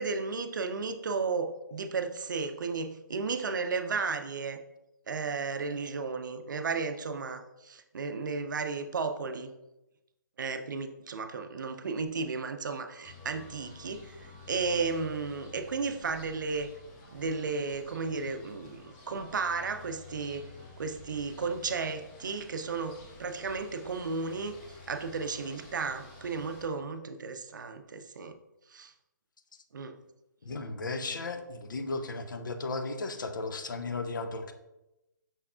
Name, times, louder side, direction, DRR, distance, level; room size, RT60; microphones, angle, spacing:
voice 1, 0.0-4.6 5.1-9.5 10.4-16.7 17.1-20.5 20.8-24.5 24.9-28.3 28.7-28.9 29.7-30.0, right 4 dB, 75° right, 8 dB, 0.5 m, -34 dB
sound 1, 13.0-26.7, left 3 dB, 25° left, 0.8 m, -51 dB
voice 2, 30.4-34.5, left 3 dB, 75° left, 7 dB, 0.6 m, -35 dB
5.6 x 3.5 x 2.3 m, 0.95 s
hypercardioid pair, 150°, 11 cm